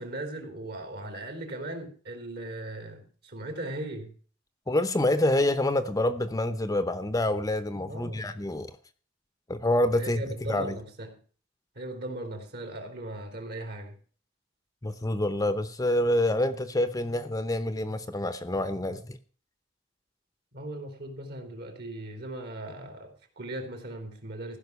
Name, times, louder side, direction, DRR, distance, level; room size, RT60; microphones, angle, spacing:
voice 1, 0.0-4.2 7.9-8.3 10.0-11.2 11.8-14.0 20.5-24.6, right 1 dB, 60° right, 5 dB, 3.5 m, -38 dB
voice 2, 4.7-8.8 9.5-10.8 14.8-19.2, left 1 dB, 20° left, 11 dB, 0.8 m, -27 dB
15.5 x 6.0 x 8.1 m, 0.41 s
head